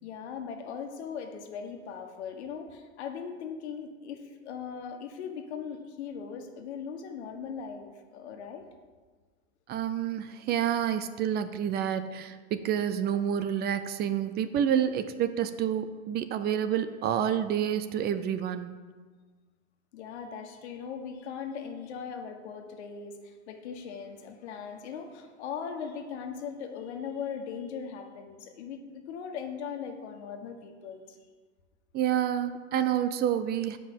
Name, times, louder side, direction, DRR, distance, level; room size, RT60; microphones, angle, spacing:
voice 1, 0.0-8.7 19.9-31.2, left 6 dB, 80° left, 5 dB, 1.4 m, -39 dB
voice 2, 9.7-18.7 31.9-33.8, right 9 dB, 30° right, 11 dB, 0.5 m, -28 dB
7.6 x 5.3 x 7.5 m, 1.4 s
supercardioid pair, 130°, 33 cm